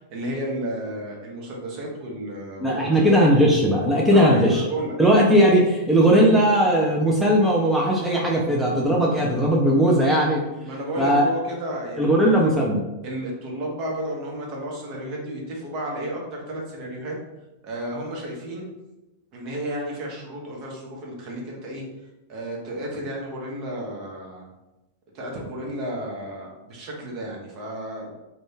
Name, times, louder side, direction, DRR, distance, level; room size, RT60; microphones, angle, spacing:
voice 1, 0.0-3.0 4.1-5.0 10.6-12.5 13.0-17.2 17.6-18.7 19.3-21.8 22.3-24.5 25.1-28.1, right 1 dB, 45° right, -2 dB, 0.9 m, -32 dB
voice 2, 2.6-4.6 5.0-10.4 11.0-11.3 12.0-12.8, equal, 5° right, -3 dB, 0.5 m, -18 dB
2.5 x 2.2 x 3.6 m, 1.0 s
figure-of-eight pair, 95°, 0 cm